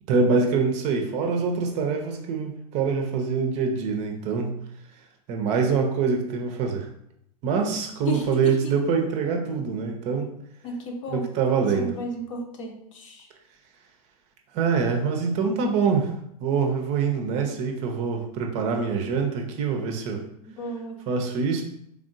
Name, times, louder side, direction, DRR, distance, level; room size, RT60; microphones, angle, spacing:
voice 1, 0.1-4.5 5.3-6.9 7.4-10.3 11.1-11.9 14.5-16.1 16.4-20.2 21.1-21.6, right 5 dB, 35° right, 3 dB, 0.6 m, -25 dB
voice 2, 8.1-8.7 10.6-11.3 11.7-13.3 20.5-21.1, equal, 50° left, 3 dB, 0.8 m, -33 dB
3.5 x 3.5 x 2.5 m, 0.75 s
figure-of-eight pair, 95°, 20 cm